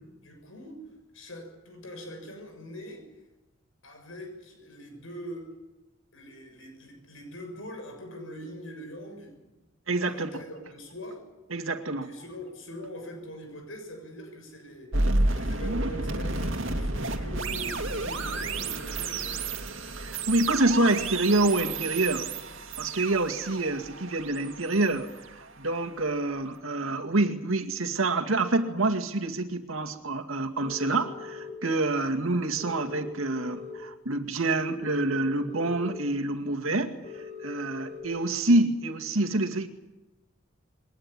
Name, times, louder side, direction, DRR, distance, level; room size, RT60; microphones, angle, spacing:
voice 1, 0.2-3.1 3.8-5.5 6.1-9.6 10.1-11.2 12.0-19.6, equal, 75° left, 4 dB, 6.9 m, -43 dB
voice 2, 9.9-10.3 11.5-12.1 20.0-22.3 22.8-25.1 25.4-37.1 37.4-39.7, right 2 dB, 85° right, 5 dB, 2.2 m, -27 dB
sound 1, 14.9-26.0, right 2 dB, 70° right, 2.5 m, -31 dB
sound 2, 30.6-31.5 32.6-33.7 34.8-36.0 37.0-38.0, left 5 dB, 35° left, 4.8 m, -41 dB
22.5 x 19.0 x 9.8 m, 1.0 s
head